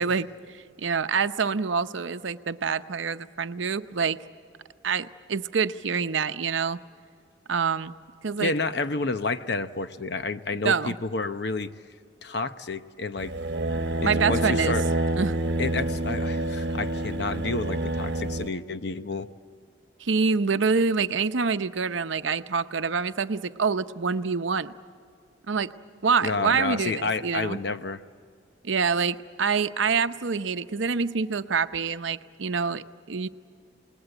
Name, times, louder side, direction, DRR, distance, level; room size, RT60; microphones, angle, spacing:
voice 1, 0.0-4.2 4.8-6.8 7.5-7.9 8.2-8.5 10.5-10.9 14.0-14.8 15.2-15.4 20.0-24.7 25.5-25.7 26.0-27.6 28.6-33.3, right 5 dB, 80° right, 11 dB, 0.7 m, -26 dB
voice 2, 8.4-11.7 12.2-13.3 14.0-14.8 15.6-19.3 26.2-28.0, left 3 dB, 60° left, 11 dB, 0.8 m, -30 dB
sound 1, 13.2-18.5, right 1 dB, 60° right, 1.3 m, -27 dB
28.0 x 20.0 x 7.9 m, 2.3 s
head